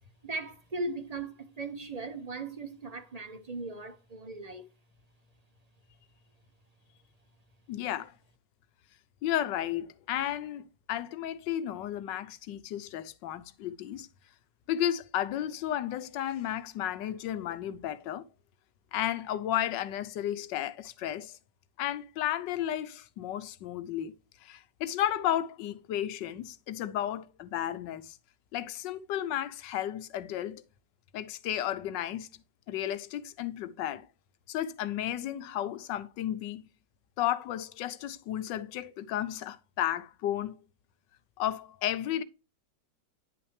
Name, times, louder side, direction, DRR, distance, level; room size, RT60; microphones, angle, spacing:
voice 1, 0.2-4.6, right 3 dB, 40° right, 0.5 m, -38 dB
voice 2, 7.7-8.1 9.2-14.1 14.7-18.3 18.9-21.4 21.8-24.1 24.4-28.2 28.5-30.6 31.1-32.3 32.7-34.1 34.5-36.6 37.2-40.6 41.4-42.2, left 11 dB, 80° left, 1.3 m, -33 dB
10.0 x 5.9 x 3.2 m
omnidirectional pair, 1.9 m